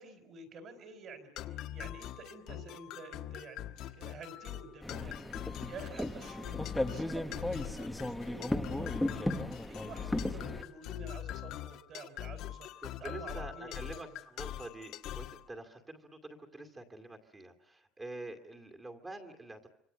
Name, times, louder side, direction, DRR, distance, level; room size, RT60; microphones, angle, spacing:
voice 1, 0.0-5.2 5.6-14.2, right 3 dB, 35° right, 9 dB, 4.1 m, -50 dB
sound 1, 1.4-15.4, left 12 dB, 55° left, 1.5 m, -43 dB
sound 2, 4.8-10.6, left 1 dB, 5° left, 1.2 m, -36 dB
voice 2, 12.8-19.7, right 2 dB, 15° right, 5 dB, 2.4 m, -46 dB
26.0 x 26.0 x 6.8 m, 0.77 s
cardioid pair, 175°, 0 cm